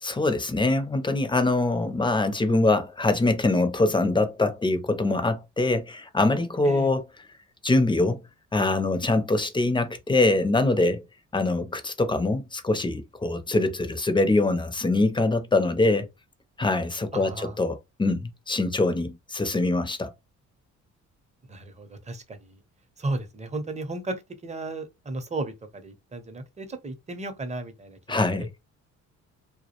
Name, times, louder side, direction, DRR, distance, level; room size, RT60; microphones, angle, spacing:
voice 1, 0.0-7.0 7.6-8.2 8.5-11.0 11.3-16.1 16.6-20.1 28.1-28.5, left 2 dB, 15° left, 0.5 m, -24 dB
voice 2, 17.1-17.6 21.5-22.6 23.0-28.5, right 2 dB, 25° right, 0.6 m, -35 dB
2.2 x 2.0 x 2.9 m
cardioid pair, 90°, 30 cm